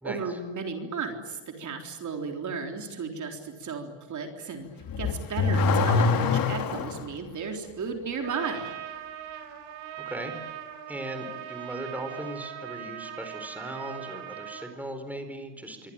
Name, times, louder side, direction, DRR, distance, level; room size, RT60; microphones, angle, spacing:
voice 1, 0.0-4.7 5.0-8.8, right 5 dB, 35° right, 4 dB, 3.8 m, -34 dB
Car / Accelerating revving vroom, 4.8-7.1, left 4 dB, 40° left, 3.0 m, -24 dB
Trumpet, 8.2-14.7, right 11 dB, 75° right, 5.4 m, -40 dB
voice 2, 10.9-15.9, right 1 dB, 5° right, 6 dB, 4.3 m, -38 dB
27.0 x 24.5 x 8.9 m, 1.3 s
cardioid pair, 140°, 50 cm